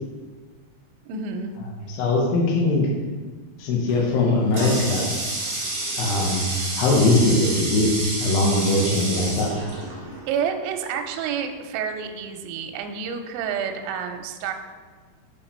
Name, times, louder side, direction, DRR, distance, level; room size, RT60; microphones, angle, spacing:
voice 1, 1.1-1.5 10.3-14.5, right 7 dB, 85° right, 5 dB, 2.7 m, -29 dB
voice 2, 1.9-2.9 3.6-5.1 6.0-6.5 6.8-7.9 8.2-9.5, left 2 dB, 75° left, -2 dB, 2.2 m, -21 dB
Water tap faucet, 3.9-10.4, right 2 dB, 60° right, 1.7 m, -30 dB
7.2 x 4.6 x 4.3 m, 1.4 s
omnidirectional pair, 5.6 m